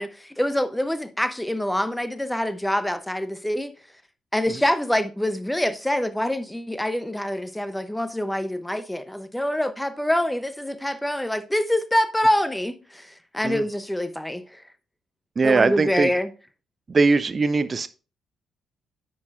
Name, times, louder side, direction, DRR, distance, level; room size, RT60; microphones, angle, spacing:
voice 1, 0.0-3.7 4.3-14.6 15.4-16.3, left 1 dB, 5° left, 0.8 m, -25 dB
voice 2, 15.4-16.1 16.9-17.9, right 4 dB, 35° right, 0.6 m, -21 dB
9.5 x 6.3 x 2.5 m
figure-of-eight pair, 40°, 0 cm